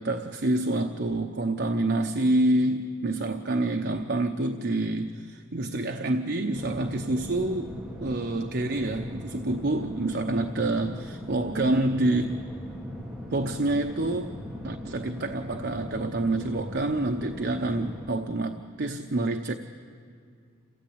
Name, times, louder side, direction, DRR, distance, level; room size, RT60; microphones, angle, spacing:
voice 1, 0.0-12.5 13.3-14.3 14.6-19.5, right 2 dB, 50° right, 5 dB, 0.8 m, -27 dB
sound 1, 6.5-18.1, left 1 dB, 5° right, 1.7 m, -39 dB
28.0 x 16.5 x 8.7 m, 2.2 s
head